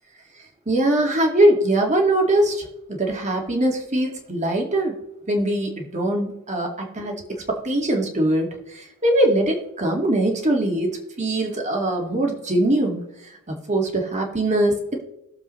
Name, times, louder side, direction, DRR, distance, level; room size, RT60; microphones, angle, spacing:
voice 1, 0.7-4.9 5.3-13.0 13.5-15.0, right 1 dB, 30° right, 1 dB, 2.0 m, -22 dB
20.0 x 7.1 x 3.2 m, 0.86 s
head